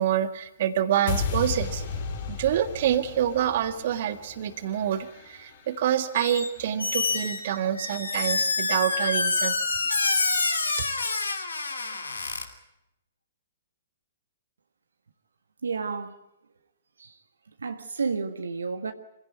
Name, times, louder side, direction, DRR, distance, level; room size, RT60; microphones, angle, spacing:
voice 1, 0.0-1.8 2.3-9.6, right 10 dB, 50° right, 1.7 m, -27 dB
sound 1, 1.1-7.2, left 4 dB, 55° left, 5.3 m, -35 dB
Squeak, 6.1-6.5 6.8-12.4, left 3 dB, 80° left, 3.0 m, -27 dB
voice 2, 15.6-16.2 17.0-17.2 17.6-18.9, right 4 dB, 75° right, 1.5 m, -31 dB
25.5 x 16.5 x 9.3 m
figure-of-eight pair, 120°, 0 cm